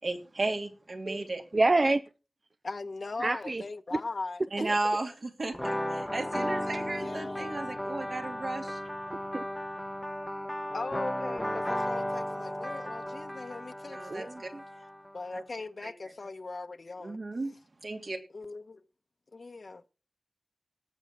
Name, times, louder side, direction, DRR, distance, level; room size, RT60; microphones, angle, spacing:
voice 1, 0.0-1.4 4.5-8.8 13.8-14.5 15.3-15.4 15.8-15.9 17.0-17.5 17.8-18.2, right 2 dB, 65° right, 3.0 m, -34 dB
voice 2, 1.5-2.0 3.2-3.6 3.9-4.0 4.6-4.7 9.3-9.4 14.1-14.6, right 2 dB, 45° right, 0.6 m, -27 dB
voice 3, 2.6-4.7 7.0-7.5 10.7-14.3 15.1-17.2 18.3-18.8 19.3-19.8, left 3 dB, 65° left, 1.0 m, -39 dB
sound 1, 5.5-15.1, left 1 dB, 10° left, 0.9 m, -35 dB
19.0 x 8.2 x 4.5 m
wide cardioid pair, 55°, 0 cm